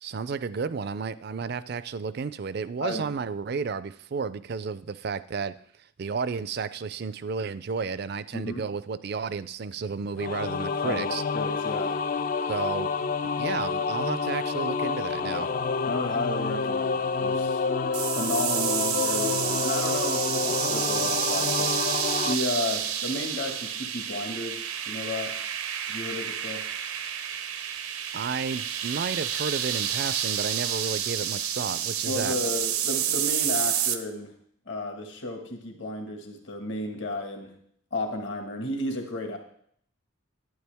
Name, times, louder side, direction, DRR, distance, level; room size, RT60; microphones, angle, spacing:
voice 1, 0.0-5.5 6.0-11.2 12.5-15.5 28.1-32.3, right 5 dB, 50° right, 15 dB, 0.4 m, -32 dB
sound 1, 10.2-22.4, left 5 dB, 40° left, 0.3 m, -28 dB
voice 2, 10.8-12.0 15.8-17.6 18.1-21.8 22.2-25.3 25.9-26.6 32.1-34.3 34.7-37.5 37.9-39.4, left 2 dB, 60° left, 3 dB, 1.7 m, -33 dB
sound 2, 17.9-34.0, right 9 dB, 90° right, 0.7 m, -29 dB
11.0 x 9.2 x 3.5 m, 0.64 s
head